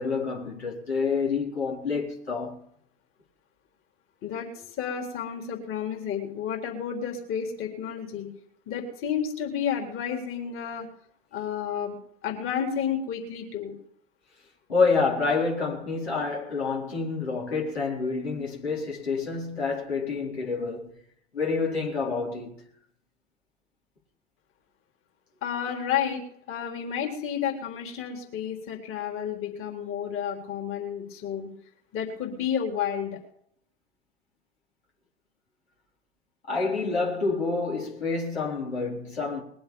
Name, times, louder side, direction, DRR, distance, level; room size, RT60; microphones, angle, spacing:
voice 1, 0.0-2.6 14.7-20.9 21.3-22.6 36.5-39.4, left 4 dB, 85° left, 4.3 m, -28 dB
voice 2, 4.2-8.3 8.7-10.9 11.3-12.0 12.2-13.7 25.4-26.2 26.5-31.5 31.9-33.2, left 8 dB, 40° left, 4.0 m, -31 dB
21.0 x 7.9 x 7.2 m
figure-of-eight pair, 75°, 31 cm